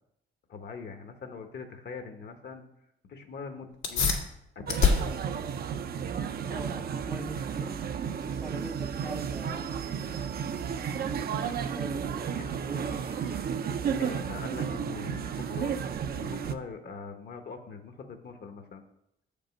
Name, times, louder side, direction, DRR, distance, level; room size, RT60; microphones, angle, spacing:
voice 1, 0.5-2.6 3.1-4.3 4.5-5.3 12.4-12.5 14.0-15.8 16.1-18.8, left 5 dB, 55° left, 7 dB, 1.1 m, -42 dB
sound 1, 3.7-13.8, left 5 dB, 80° left, 1.6 m, -34 dB
sound 2, 4.7-16.6, right 7 dB, 50° right, 0.6 m, -33 dB
sound 3, 6.0-15.8, right 3 dB, 80° right, 1.7 m, -55 dB
voice 2, 6.5-7.8 8.1-9.7 11.6-13.2, right 1 dB, 5° right, 5 dB, 0.5 m, -42 dB
7.2 x 5.2 x 5.2 m, 0.82 s
cardioid pair, 90°, 20 cm